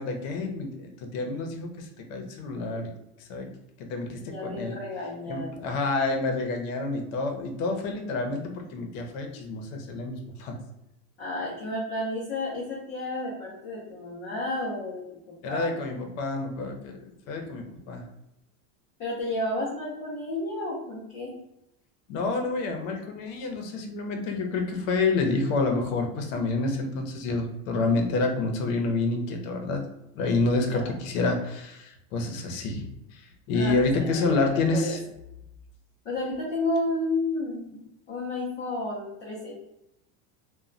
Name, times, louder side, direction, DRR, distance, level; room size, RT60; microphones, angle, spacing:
voice 1, 0.0-2.9 3.2-3.5 3.9-4.8 5.3-10.6 15.4-17.0 17.3-18.0 22.1-29.8 30.1-35.0, left 3 dB, 80° left, 4 dB, 0.7 m, -28 dB
voice 2, 4.2-5.6 11.2-15.7 19.0-21.3 30.7-30.9 33.5-34.4 34.7-34.9 36.0-37.8 38.1-39.5, left 2 dB, 25° left, -7 dB, 0.5 m, -32 dB
2.2 x 2.1 x 3.7 m, 0.85 s
cardioid pair, 175°, 40 cm